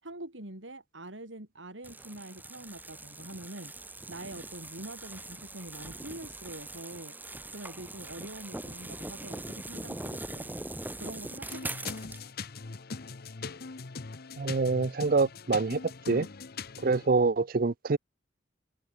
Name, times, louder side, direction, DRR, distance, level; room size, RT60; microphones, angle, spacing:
voice 1, 0.0-3.7 4.1-7.2 7.5-10.6 11.0-11.9, right 1 dB, 85° right, 5.7 m, -44 dB
sound 1, 1.8-12.2, right 2 dB, 10° right, 2.0 m, -42 dB
sound 2, 11.4-17.1, left 5 dB, 55° left, 0.8 m, -41 dB
voice 2, 14.4-15.8 16.1-16.3 16.8-18.0, right 4 dB, 50° right, 0.6 m, -26 dB
head